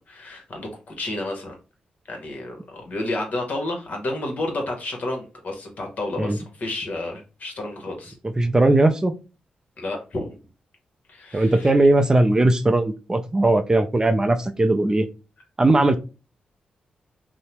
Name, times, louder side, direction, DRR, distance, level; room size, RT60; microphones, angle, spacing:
voice 1, 0.1-1.5 2.1-8.1 9.8-10.4 11.1-11.7, left 2 dB, 55° left, 2 dB, 1.1 m, -31 dB
voice 2, 8.4-9.1 11.3-15.1 15.6-16.0, right 2 dB, 20° right, 7 dB, 0.4 m, -18 dB
2.7 x 2.1 x 3.0 m, 0.30 s
cardioid pair, 60°, 3 cm